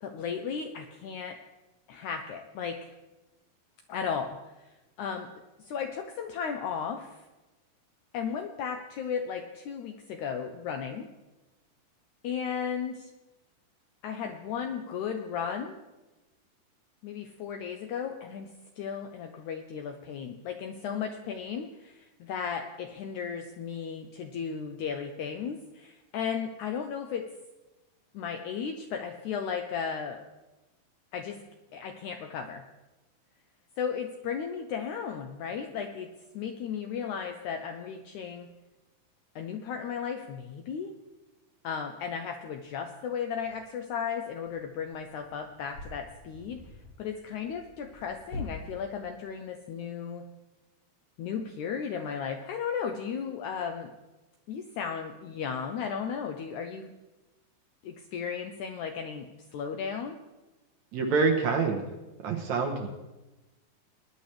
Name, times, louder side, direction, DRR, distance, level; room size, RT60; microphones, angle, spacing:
voice 1, 0.0-1.4 1.9-2.9 3.9-4.4 5.0-5.3 5.6-7.2 8.1-11.1 12.2-13.1 14.0-15.8 17.0-18.5 18.8-27.3 28.1-30.2 31.1-31.4 31.7-32.6 33.8-38.5 39.4-40.9 41.6-46.6 47.0-50.3 51.2-53.9 54.5-56.9 57.8-60.2, left 7 dB, 80° left, 5 dB, 1.8 m, -35 dB
sound 1, 43.4-43.6 44.3-48.5, left 3 dB, 25° left, 1.9 m, -45 dB
voice 2, 60.9-61.8 62.2-62.9, right 4 dB, 65° right, 2 dB, 2.1 m, -26 dB
20.0 x 10.5 x 3.3 m, 1.1 s
omnidirectional pair, 4.2 m